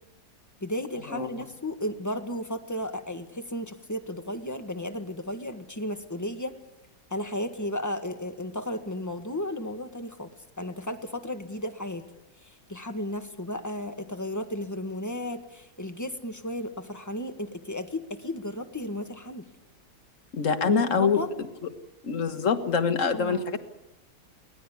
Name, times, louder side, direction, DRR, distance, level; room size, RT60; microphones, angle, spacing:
voice 1, 0.6-6.5 7.1-10.3 10.6-12.0 12.5-19.5 20.6-21.3 23.1-23.5, left 1 dB, 10° left, 7 dB, 1.3 m, -34 dB
voice 2, 20.3-21.2 22.0-23.6, left 6 dB, 45° left, 8 dB, 1.7 m, -25 dB
23.5 x 18.5 x 8.5 m, 0.95 s
omnidirectional pair, 2.0 m